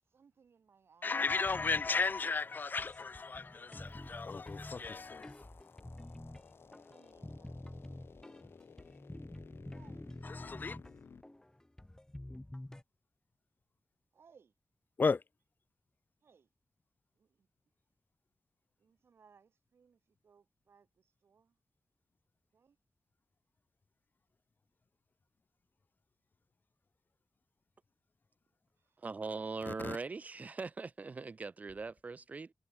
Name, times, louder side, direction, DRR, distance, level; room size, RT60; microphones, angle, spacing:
voice 1, 0.0-1.8 2.2-2.4 6.6-8.3 9.7-10.1 14.1-14.5 16.2-16.5 17.1-17.5 18.8-21.6 22.5-22.8 28.8-29.1, right 6 dB, 85° right, 7.5 m, -66 dB
voice 2, 1.0-5.5 10.2-10.8 15.0-15.2 29.7-30.0, left 4 dB, 50° left, 1.1 m, -34 dB
sound 1, 1.3-12.8, left 1 dB, 15° left, 1.4 m, -49 dB
sound 2, 3.8-11.2, left 6 dB, 75° left, 1.2 m, -58 dB
voice 3, 29.0-32.5, right 4 dB, 40° right, 0.3 m, -41 dB
wide cardioid pair, 80°, 4 cm